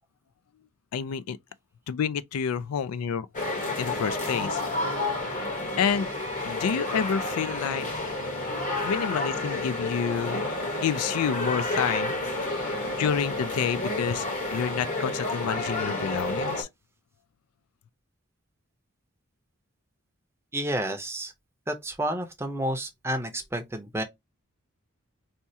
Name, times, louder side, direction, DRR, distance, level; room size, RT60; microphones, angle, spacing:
voice 1, 0.9-1.4 1.9-3.3 3.8-4.6 5.8-6.1 6.4-7.9 8.8-10.5 10.8-12.1 13.0-14.3 14.5-16.7, left 7 dB, 85° left, 0.3 m, -28 dB
sound 1, 3.3-16.6, left 2 dB, 35° left, 0.9 m, -30 dB
voice 2, 20.5-21.3 21.7-24.0, right 1 dB, 10° right, 0.5 m, -30 dB
4.2 x 2.3 x 2.7 m
head